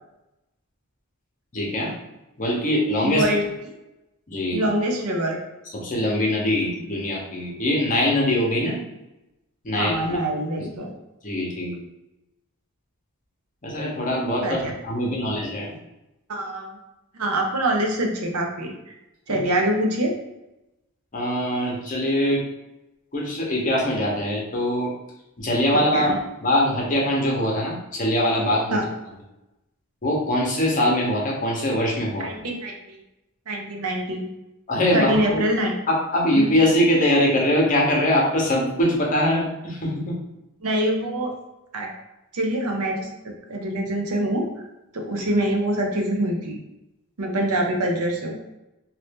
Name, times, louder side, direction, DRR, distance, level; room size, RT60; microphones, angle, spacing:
voice 1, 1.5-1.9 2.4-3.2 4.3-4.7 5.7-8.8 9.6-10.2 11.2-11.8 13.6-15.7 19.3-19.4 21.1-22.4 23.1-24.9 25.4-28.8 30.0-32.3 34.7-35.4 35.9-40.2, left 1 dB, 35° left, -2 dB, 0.8 m, -22 dB
voice 2, 3.0-3.4 4.5-5.4 9.8-10.9 14.4-14.7 16.3-16.8 17.1-18.8 19.3-20.1 25.9-26.2 28.7-28.8 32.2-33.0 33.5-34.3 34.9-35.7 36.3-36.5 40.6-41.3 41.7-41.9 42.3-44.5 44.9-46.6 47.2-48.4, right 1 dB, 80° right, 1 dB, 0.7 m, -24 dB
2.8 x 2.6 x 3.5 m, 0.95 s
head